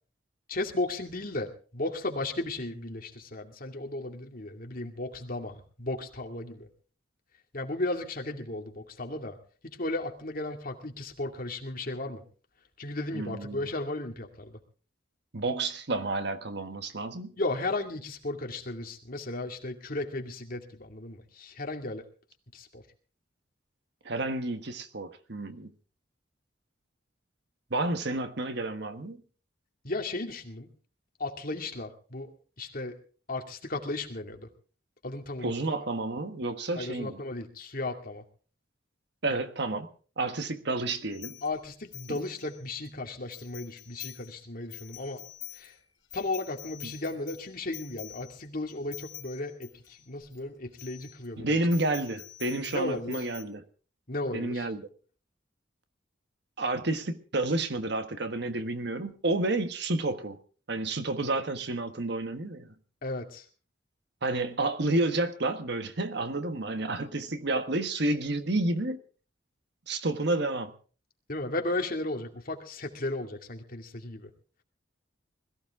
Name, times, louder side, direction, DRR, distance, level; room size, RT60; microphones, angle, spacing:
voice 1, 0.5-6.7 7.5-9.4 9.6-12.2 12.8-14.6 17.4-22.1 22.5-22.8 29.8-30.7 31.2-32.3 32.6-33.0 33.3-34.5 35.0-35.8 36.7-38.2 39.3-39.4 41.4-45.2 45.5-45.7 46.1-51.6 52.7-53.2 54.1-54.7 63.0-63.5 71.3-74.3, left 2 dB, 50° left, 2.4 m, -35 dB
voice 2, 13.1-13.7 15.3-17.3 24.0-25.7 27.7-29.2 35.4-37.2 39.2-39.9 40.2-41.4 42.1-42.2 51.4-53.6 54.3-54.9 56.6-60.4 60.7-62.7 64.2-69.0 69.9-70.7, right 2 dB, 60° right, 1.4 m, -30 dB
sound 1, 41.1-42.9 43.3-44.3 44.6-50.4 50.7-51.3 51.7-53.4, left 16 dB, 80° left, 3.1 m, -47 dB
21.0 x 15.0 x 3.6 m
head